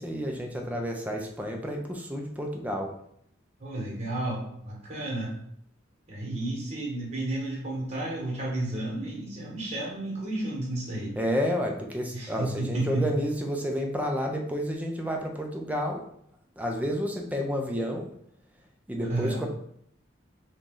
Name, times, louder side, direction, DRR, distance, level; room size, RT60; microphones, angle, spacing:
voice 1, 0.0-2.9 11.2-16.0 16.6-18.1 18.9-19.5, equal, 10° right, 1 dB, 0.4 m, -30 dB
voice 2, 3.6-5.4 6.1-11.2 12.1-13.1 19.0-19.4, right 2 dB, 35° right, -4 dB, 1.3 m, -32 dB
3.0 x 2.6 x 3.7 m, 0.70 s
head